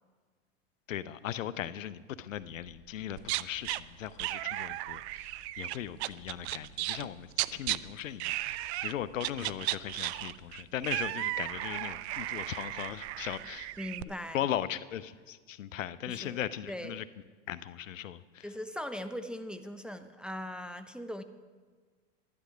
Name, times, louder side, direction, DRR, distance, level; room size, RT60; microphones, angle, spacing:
voice 1, 0.9-13.7 14.3-17.1 17.5-18.5, left 11 dB, 90° left, 17 dB, 0.6 m, -38 dB
sound 1, 2.3-13.5, right 2 dB, 40° right, 1.8 m, -59 dB
sound 2, 3.2-3.8 4.2-7.1 7.3-7.8 8.2-8.9 9.2-14.0, right 17 dB, 60° right, 0.5 m, -35 dB
voice 2, 13.8-14.4 16.1-16.4 16.7-17.0 18.4-21.2, left 1 dB, ahead, 8 dB, 0.5 m, -40 dB
11.5 x 11.0 x 5.0 m, 1.5 s
hypercardioid pair, 95°, 38 cm